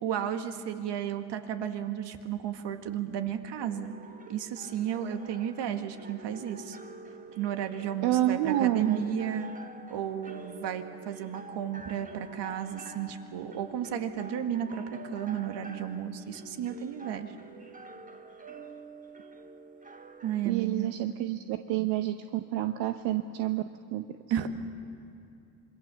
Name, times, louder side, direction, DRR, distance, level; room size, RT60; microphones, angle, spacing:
voice 1, 0.0-4.0 4.3-6.8 7.4-9.5 9.9-17.4 20.2-20.9 24.3-24.5, right 9 dB, 65° right, 7 dB, 2.0 m, -33 dB
sound 1, 3.6-20.6, right 3 dB, 15° right, 1.6 m, -47 dB
voice 2, 8.0-9.0 20.4-23.6 23.9-24.0, right 13 dB, 85° right, 8 dB, 0.9 m, -28 dB
26.5 x 22.5 x 7.0 m, 2.6 s
supercardioid pair, 95°, 45 cm